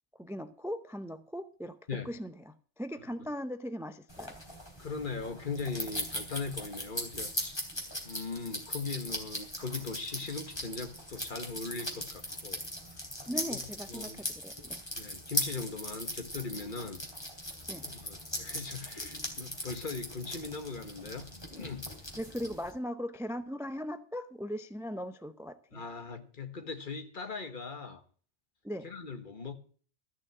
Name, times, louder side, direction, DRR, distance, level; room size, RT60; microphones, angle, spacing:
voice 1, 0.2-1.8 2.0-4.4 13.3-14.8 17.7-17.9 21.5-21.7 22.2-25.8 28.6-28.9, equal, 5° right, 0.4 m, -39 dB
sound 1, 4.1-22.7, equal, 20° left, 2.9 m, -39 dB
voice 2, 4.8-7.6 8.0-12.6 13.3-13.6 13.9-14.2 14.9-17.0 17.8-21.9 25.7-28.0 28.8-29.5, left 4 dB, 45° left, 1.5 m, -39 dB
14.5 x 6.3 x 7.7 m
omnidirectional pair, 1.2 m